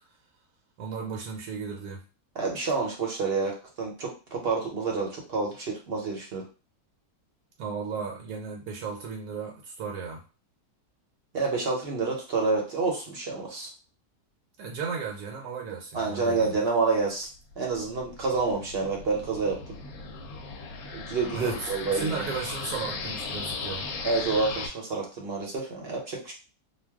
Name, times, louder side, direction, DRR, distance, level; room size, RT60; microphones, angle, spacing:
voice 1, 0.8-2.0 7.6-10.2 14.6-16.6 21.3-23.9, right 5 dB, 75° right, 0 dB, 1.1 m, -35 dB
voice 2, 2.3-6.5 11.3-13.7 15.9-17.3 17.6-19.6 20.9-22.3 24.0-26.3, right 4 dB, 50° right, 0 dB, 0.8 m, -28 dB
sound 1, 17.4-24.7, left 4 dB, 75° left, 1.0 m, -37 dB
2.5 x 2.2 x 3.4 m, 0.33 s
omnidirectional pair, 1.6 m